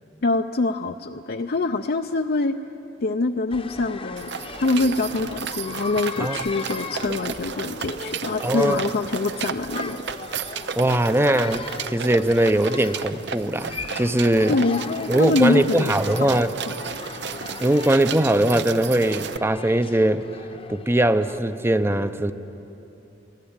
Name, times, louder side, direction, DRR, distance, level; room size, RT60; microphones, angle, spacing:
voice 1, 0.2-2.5 3.0-4.3 4.6-10.0 14.5-16.8, left 3 dB, 55° left, 5 dB, 0.5 m, -24 dB
sound 1, 3.5-21.4, left 3 dB, 30° left, 0.8 m, -38 dB
sound 2, 4.2-19.4, right 7 dB, 65° right, 0.6 m, -33 dB
voice 2, 8.4-8.8 10.8-14.6 15.1-16.5 17.6-20.3 20.7-22.3, right 1 dB, 15° right, 11 dB, 0.7 m, -21 dB
23.5 x 17.0 x 8.8 m, 2.9 s
head